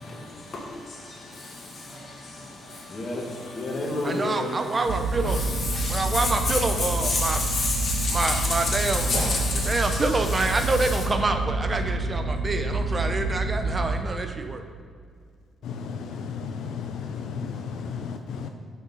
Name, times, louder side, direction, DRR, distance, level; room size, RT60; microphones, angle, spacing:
voice 1, 0.0-11.0, left 3 dB, 50° left, -2 dB, 1.8 m, -30 dB
voice 2, 4.0-5.4 5.9-7.4 8.1-9.2 9.7-14.6, right 2 dB, 30° right, 7 dB, 0.6 m, -27 dB
sound 1, 4.9-14.0, right 2 dB, 80° right, 0.5 m, -28 dB
voice 3, 15.6-18.5, left 6 dB, 75° left, 6 dB, 0.4 m, -34 dB
6.1 x 5.3 x 5.3 m, 2.1 s
cardioid pair, 90°, 0 cm